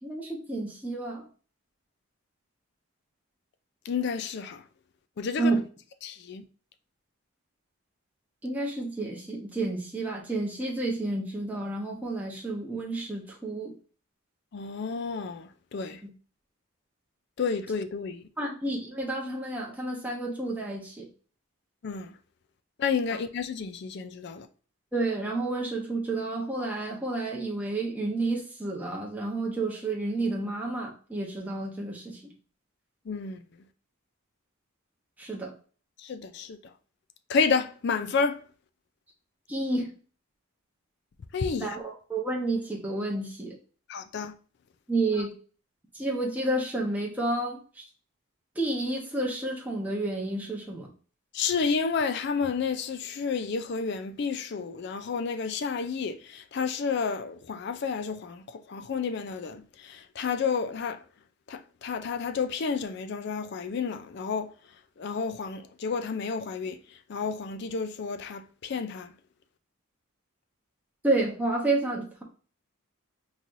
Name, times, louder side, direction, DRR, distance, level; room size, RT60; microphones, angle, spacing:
voice 1, 0.0-1.2 5.4-5.6 8.4-13.7 16.0-16.1 18.4-21.1 24.9-32.2 35.2-35.5 39.5-39.9 41.6-43.6 44.9-45.3 45.9-47.8 48.6-50.9 71.0-72.2, right 2 dB, 10° right, 0.8 m, -30 dB
voice 2, 3.9-4.6 5.2-5.5 6.0-6.4 14.5-16.0 17.4-18.2 21.8-22.1 22.8-24.5 33.1-33.4 36.0-36.6 37.3-38.4 41.3-41.8 43.9-44.3 51.3-58.4 58.7-59.6 59.9-61.0 61.5-64.5 65.0-66.7 67.1-69.1, left 5 dB, 50° left, 0.4 m, -30 dB
4.0 x 3.1 x 2.5 m
head